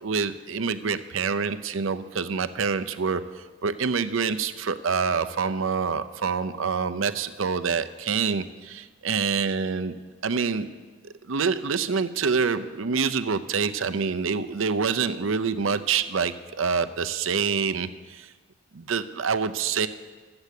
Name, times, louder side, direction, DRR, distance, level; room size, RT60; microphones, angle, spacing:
voice 1, 0.0-3.2 3.6-10.0 10.2-10.7 11.0-18.3 18.7-19.9, right 5 dB, 75° right, 11 dB, 0.6 m, -26 dB
13.5 x 7.9 x 8.2 m, 1.4 s
head